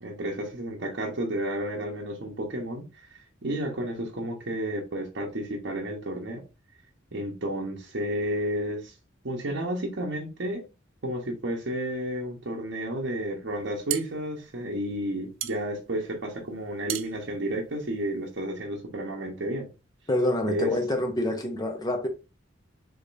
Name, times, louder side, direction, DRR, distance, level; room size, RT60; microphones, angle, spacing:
voice 1, 0.0-2.8 3.4-6.4 7.1-8.9 9.2-10.6 11.0-19.7 20.5-20.7, right 1 dB, 65° right, 1.0 m, -31 dB
sound 1, 13.5-18.5, right 13 dB, 85° right, 0.4 m, -37 dB
voice 2, 20.1-22.1, left 1 dB, 20° left, 0.9 m, -26 dB
5.0 x 3.2 x 2.6 m
head